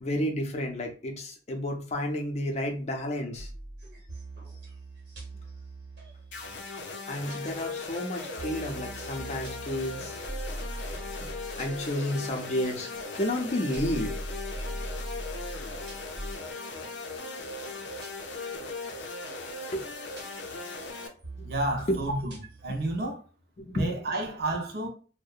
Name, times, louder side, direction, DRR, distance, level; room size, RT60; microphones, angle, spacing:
voice 1, 0.0-3.5 7.1-10.2 11.3-12.9 13.1-14.2 19.7-19.9 21.9-22.0 23.6-23.9, left 1 dB, 40° left, 0.5 m, -31 dB
sound 1, 3.3-6.8 7.3-7.8 8.1-13.3 13.7-16.4 16.7-16.9 17.2-17.5 18.0-18.3 18.8-19.0 19.4-19.5 19.6-19.8 20.2-20.6 21.0-22.9, right 1 dB, 75° right, 1.0 m, -42 dB
sound 2, 6.3-21.1, left 3 dB, 90° left, 0.5 m, -38 dB
voice 2, 21.4-23.2 23.7-24.9, right 2 dB, 60° right, 0.6 m, -31 dB
2.6 x 2.0 x 2.3 m
head